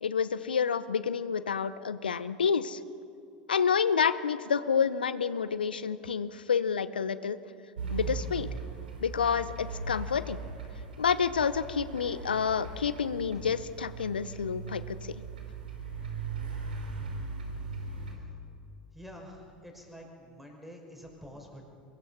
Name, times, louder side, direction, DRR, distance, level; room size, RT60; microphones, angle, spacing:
voice 1, 0.0-2.8 3.5-7.4 7.9-8.5 9.0-10.4 11.0-15.1, left 6 dB, 85° left, 15 dB, 0.7 m, -29 dB
sound 1, 7.8-18.1, right 4 dB, 80° right, 3.8 m, -39 dB
voice 2, 18.9-21.6, equal, 5° right, 1 dB, 5.7 m, -47 dB
23.5 x 21.5 x 5.7 m, 2.5 s
hypercardioid pair, 80°, 5 cm